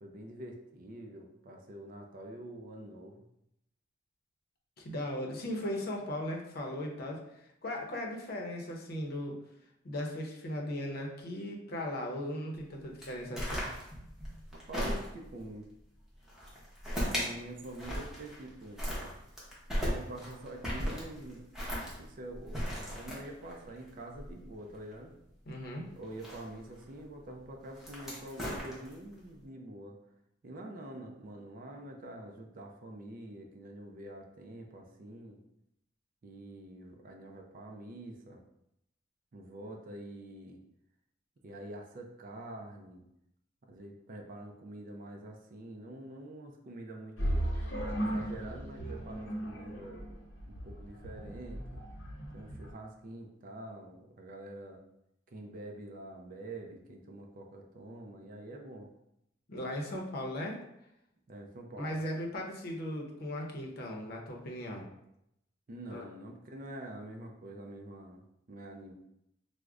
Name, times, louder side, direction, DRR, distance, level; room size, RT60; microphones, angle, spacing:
voice 1, 0.0-3.2 14.7-15.7 16.9-18.8 19.8-21.5 21.9-22.6 22.9-25.1 25.9-30.0 30.4-35.4 36.2-38.4 39.3-40.6 41.4-43.1 43.7-47.7 48.0-50.0 50.4-51.8 52.3-54.8 55.3-58.9 61.3-62.0 65.7-68.2 68.5-68.9, right 1 dB, 45° right, 2 dB, 0.4 m, -46 dB
voice 2, 4.8-9.4 9.8-13.7 25.5-25.8 59.5-60.6 61.8-64.9 65.9-66.0, left 1 dB, 55° left, 0 dB, 0.6 m, -37 dB
sound 1, 13.0-15.4 16.3-17.3 17.6-18.5 18.8-24.9 26.0-26.8 27.6-29.1, equal, ahead, 0.8 m, -36 dB
sound 2, 47.2-52.7, right 1 dB, 90° left, 0.8 m, -36 dB
4.7 x 2.1 x 2.4 m, 0.81 s
head